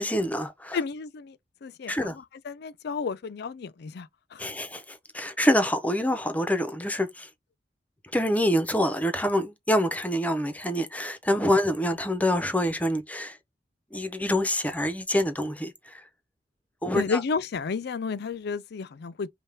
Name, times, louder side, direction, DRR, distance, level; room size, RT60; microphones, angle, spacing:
voice 1, 0.0-0.8 1.9-2.2 4.4-7.3 8.1-13.4 13.9-16.0 16.8-17.2, equal, 10° left, 0.7 m, -26 dB
voice 2, 0.7-4.5 16.9-19.3, left 5 dB, 65° left, 0.4 m, -32 dB
5.4 x 2.3 x 3.4 m
head